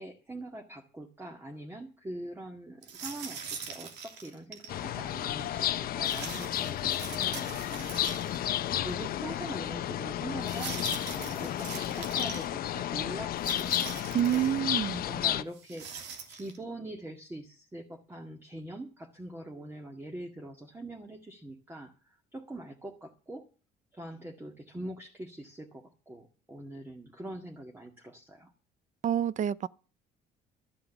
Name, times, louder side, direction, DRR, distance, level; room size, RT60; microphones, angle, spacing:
voice 1, 0.0-8.2 8.8-14.5 15.0-23.5 23.9-28.5, right 1 dB, 15° right, 2.0 m, -43 dB
sound 1, 2.8-4.7 6.0-8.6 8.9-9.0 10.4-12.5 13.4-14.6 15.5-16.6, right 6 dB, 85° right, 2.8 m, -42 dB
sound 2, 4.7-15.4, left 12 dB, 60° left, 0.8 m, -32 dB
voice 2, 14.1-15.0 29.0-29.7, right 10 dB, 45° right, 0.7 m, -28 dB
13.0 x 8.4 x 7.2 m
cardioid pair, 110°, 17 cm